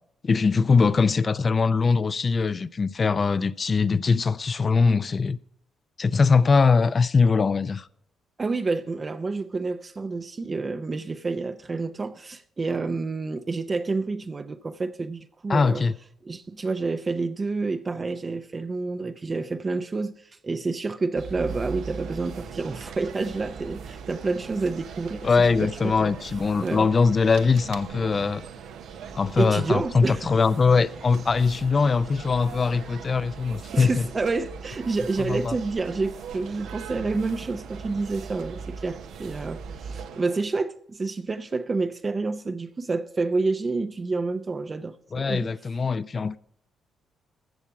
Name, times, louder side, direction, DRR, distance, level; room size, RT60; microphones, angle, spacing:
voice 1, 0.2-5.4 6.0-7.9 15.5-15.9 25.2-28.4 29.1-34.1 35.2-35.6 45.1-46.4, left 4 dB, 35° left, 0.4 m, -22 dB
voice 2, 8.4-15.8 16.3-26.1 26.6-26.9 29.4-30.3 33.7-45.5, right 3 dB, 30° right, 0.5 m, -29 dB
sound 1, 21.2-40.1, right 5 dB, 60° right, 2.1 m, -42 dB
sound 2, 21.5-40.5, right 8 dB, 85° right, 0.8 m, -43 dB
14.0 x 7.2 x 4.7 m
cardioid pair, 90°, 0 cm